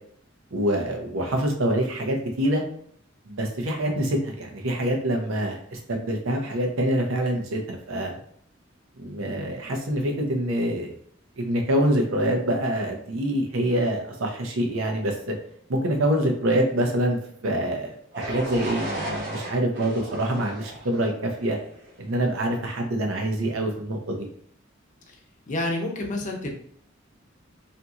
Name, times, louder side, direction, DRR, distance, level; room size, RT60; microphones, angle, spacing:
voice 1, 0.5-2.6 3.3-8.2 9.0-10.9 11.4-15.4 15.7-21.6 22.0-24.3, right 1 dB, 90° right, 2 dB, 0.7 m, -25 dB
sound 1, 18.1-22.0, equal, 55° right, 0.8 m, -35 dB
voice 2, 25.5-26.5, left 1 dB, 40° left, 1 dB, 0.5 m, -29 dB
2.7 x 2.6 x 2.4 m, 0.63 s
head